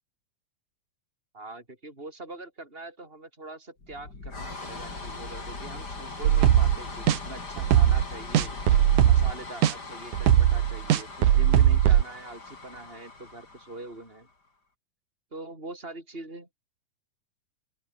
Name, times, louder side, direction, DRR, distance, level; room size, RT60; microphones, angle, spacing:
voice 1, 1.3-8.6 9.0-14.3 15.3-16.5, right 2 dB, 15° right, 8.2 m, -43 dB
sound 1, 3.8-14.3, left 3 dB, 30° left, 5.1 m, -40 dB
sound 2, 6.2-6.8 7.1-7.2 7.6-8.0 8.4-9.3 9.6-9.7 10.1-12.0, right 11 dB, 75° right, 3.0 m, -19 dB
open air
omnidirectional pair, 3.6 m